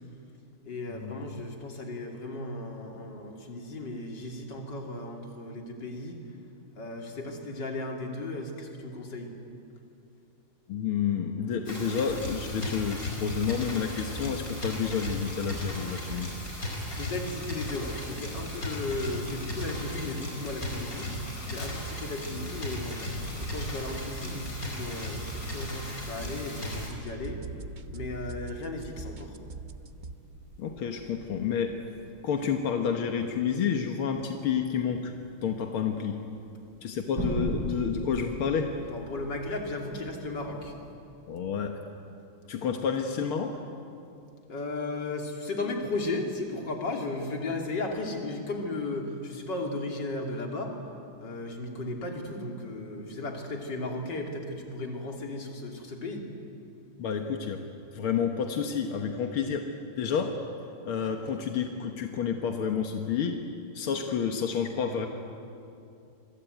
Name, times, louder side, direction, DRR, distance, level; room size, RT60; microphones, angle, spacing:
voice 1, 0.6-6.2 6.7-9.3 16.9-21.1 21.5-23.0 23.4-27.4 27.9-29.4 38.9-40.7 44.5-50.8 51.2-56.3, left 2 dB, 55° left, 2 dB, 3.6 m, -35 dB
voice 2, 10.7-16.3 30.6-31.8 32.2-35.1 35.4-36.2 36.8-38.7 41.3-41.8 42.5-43.6 57.0-57.6 57.9-59.7 60.0-60.3 60.8-63.4 63.7-65.1, left 7 dB, 85° left, 4 dB, 2.2 m, -29 dB
sound 1, 11.7-26.9, left 1 dB, 40° left, 5.1 m, -37 dB
sound 2, 11.7-30.1, right 4 dB, 75° right, 0.4 m, -44 dB
sound 3, 23.0-40.9, right 1 dB, 60° right, 5.3 m, -42 dB
27.0 x 22.5 x 9.3 m, 2.7 s
omnidirectional pair, 2.3 m